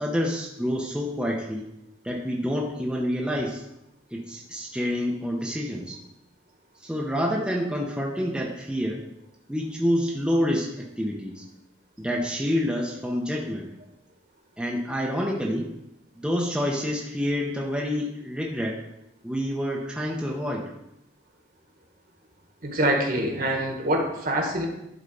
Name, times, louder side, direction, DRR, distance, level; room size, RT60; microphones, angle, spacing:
voice 1, 0.0-1.6 2.0-3.6 4.1-6.0 6.8-9.0 9.5-11.4 12.0-13.7 14.6-15.7 16.1-18.8 19.2-20.7, equal, 5° right, -2 dB, 0.9 m, -28 dB
voice 2, 22.6-24.7, right 1 dB, 50° right, 1 dB, 1.7 m, -25 dB
11.5 x 4.1 x 5.4 m, 0.86 s
head